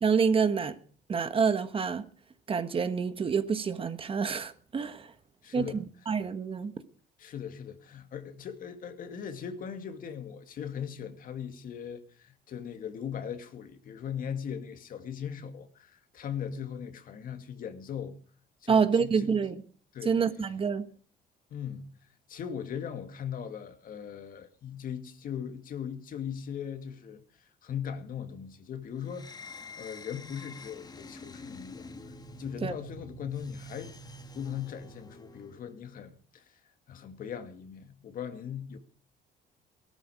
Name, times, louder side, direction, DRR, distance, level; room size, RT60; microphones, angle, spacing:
voice 1, 0.0-0.8 1.1-2.0 2.5-5.1 5.5-6.7 18.7-19.6 20.0-20.9 32.6-32.7, right 6 dB, 30° right, 1.3 m, -27 dB
voice 2, 5.4-5.8 7.2-18.2 18.6-19.4 19.9-20.2 21.5-21.9 22.3-29.3 29.8-34.0 34.4-36.6 36.9-38.8, left 8 dB, 55° left, 2.3 m, -39 dB
sound 1, 29.0-35.7, left 1 dB, 25° left, 1.4 m, -47 dB
18.0 x 13.0 x 5.0 m
cardioid pair, 110°, 17 cm